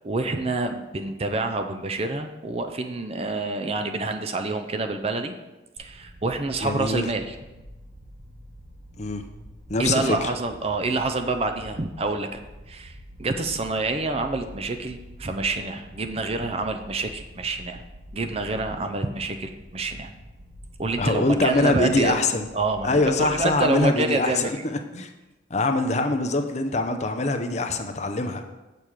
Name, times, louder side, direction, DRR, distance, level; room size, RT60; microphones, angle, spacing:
voice 1, 0.0-5.3 5.8-7.3 9.8-12.4 12.7-17.8 18.1-20.1 20.8-22.2 22.5-24.6, right 3 dB, 30° right, 6 dB, 0.5 m, -27 dB
sound 1, 5.8-23.8, equal, 60° right, 1.2 m, -46 dB
voice 2, 6.6-7.1 9.0-9.2 9.7-10.3 21.0-22.5 22.8-25.1 25.5-28.5, left 2 dB, 35° left, 7 dB, 0.6 m, -24 dB
7.2 x 6.7 x 4.7 m, 1.1 s
head